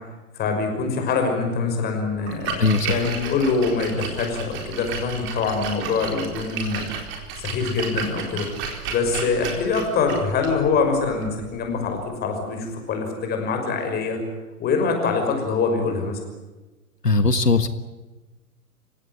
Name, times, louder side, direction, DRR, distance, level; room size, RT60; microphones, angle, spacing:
voice 1, 0.3-6.9 7.4-8.5 8.9-14.2 14.6-16.2, left 4 dB, 20° left, 4 dB, 5.9 m, -24 dB
Splash splatter, 2.1-12.1, right 6 dB, 25° right, 4.2 m, -33 dB
voice 2, 2.6-3.0 17.0-17.7, left 3 dB, 90° left, 11 dB, 1.6 m, -19 dB
29.0 x 17.0 x 9.5 m, 1.1 s
figure-of-eight pair, 120°, 47 cm